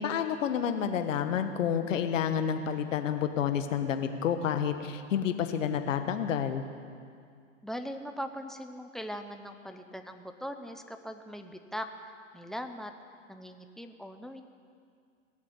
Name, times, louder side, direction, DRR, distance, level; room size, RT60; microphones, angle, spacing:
voice 1, 0.0-6.6, left 8 dB, 75° left, 8 dB, 1.4 m, -29 dB
voice 2, 7.6-12.9 13.3-14.4, equal, ahead, 7 dB, 0.8 m, -40 dB
19.5 x 7.4 x 9.9 m, 2.2 s
hypercardioid pair, 110°, 39 cm